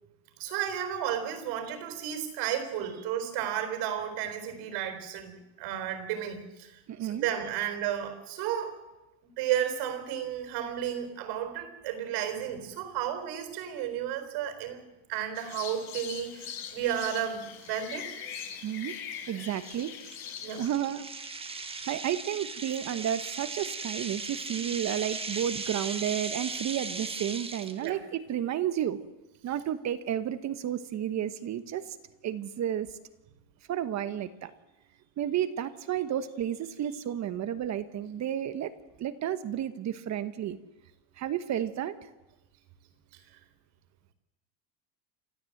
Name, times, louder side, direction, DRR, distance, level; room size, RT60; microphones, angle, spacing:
voice 1, 0.4-8.8 9.2-14.8 15.1-18.1 20.4-20.6 27.8-28.0, right 10 dB, 70° right, 6 dB, 4.1 m, -33 dB
voice 2, 6.9-7.3 18.6-19.0 19.3-19.9 20.6-21.0 21.9-29.0 29.4-32.0 32.2-32.9 33.7-34.5 35.2-38.7 39.0-40.6 41.2-41.9, right 10 dB, 40° right, 11 dB, 1.1 m, -32 dB
sound 1, 15.3-20.7, left 8 dB, 60° left, 4.0 m, -42 dB
sound 2, 17.6-17.7 18.3-18.5 18.9-19.0 19.5-27.9, right 4 dB, 15° right, 1.3 m, -38 dB
28.5 x 13.0 x 7.8 m, 1.0 s
cardioid pair, 135°, 43 cm